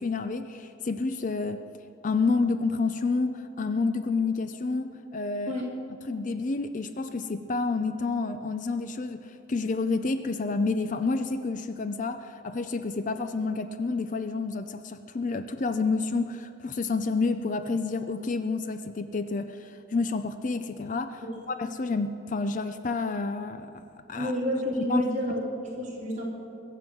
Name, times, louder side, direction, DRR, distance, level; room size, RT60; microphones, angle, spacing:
voice 1, 0.0-1.6 2.0-5.5 6.0-24.4 24.9-25.1, left 3 dB, 35° left, 10 dB, 0.4 m, -29 dB
voice 2, 24.1-26.2, equal, 35° right, -4 dB, 3.0 m, -29 dB
21.5 x 8.1 x 6.1 m, 2.7 s
head